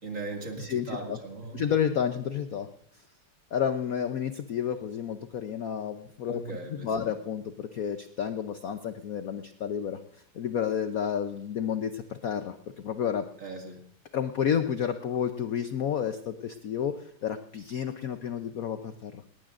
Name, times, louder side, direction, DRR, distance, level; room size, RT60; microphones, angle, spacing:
voice 1, 0.0-1.6 6.3-6.9 13.4-13.9, right 3 dB, 35° right, 2 dB, 2.4 m, -38 dB
voice 2, 0.6-1.2 1.5-2.7 3.5-6.4 6.7-10.0 10.3-13.3 14.1-19.2, left 8 dB, 65° left, 8 dB, 0.8 m, -30 dB
19.0 x 18.5 x 2.5 m, 0.66 s
omnidirectional pair, 2.3 m